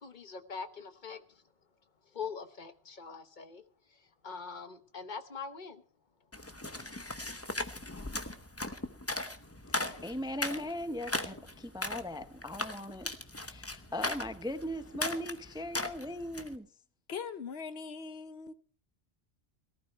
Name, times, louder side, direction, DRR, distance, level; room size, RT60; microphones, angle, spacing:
voice 1, 0.0-1.2 2.1-3.6 4.2-5.8, left 5 dB, 50° left, 1.2 m, -42 dB
sound 1, 6.3-16.6, left 2 dB, 15° left, 0.9 m, -38 dB
voice 2, 9.7-16.7, left 1 dB, 5° right, 0.5 m, -39 dB
voice 3, 17.1-18.5, left 6 dB, 75° left, 1.1 m, -41 dB
18.5 x 12.5 x 4.4 m
omnidirectional pair, 1.1 m